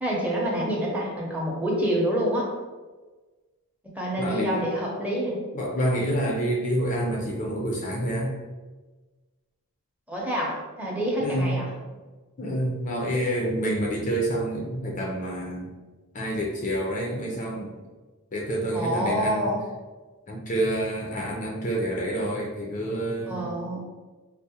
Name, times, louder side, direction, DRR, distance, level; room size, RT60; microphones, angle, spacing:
voice 1, 0.0-2.5 3.9-5.4 10.1-11.7 18.7-19.6 23.3-23.8, equal, 5° right, -4 dB, 0.7 m, -27 dB
voice 2, 4.2-4.6 5.5-8.4 11.2-11.6 12.4-15.7 16.1-17.8 18.3-19.5 20.3-23.6, right 1 dB, 35° left, -2 dB, 0.5 m, -28 dB
4.7 x 2.0 x 2.7 m, 1.3 s
head